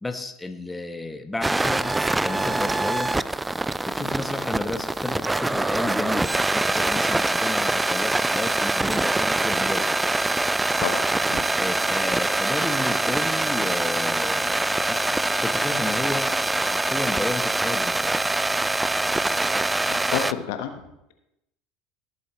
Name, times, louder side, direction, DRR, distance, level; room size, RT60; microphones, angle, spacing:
voice 1, 0.0-3.1 3.8-9.9 11.3-15.0 15.4-18.2, left 2 dB, 10° left, 7 dB, 1.0 m, -32 dB
sound 1, 1.4-20.3, right 2 dB, 10° right, 0.3 m, -24 dB
voice 2, 19.6-20.7, left 9 dB, 65° left, 7 dB, 1.1 m, -30 dB
17.5 x 8.2 x 3.1 m, 0.85 s
hypercardioid pair, 70°, 0 cm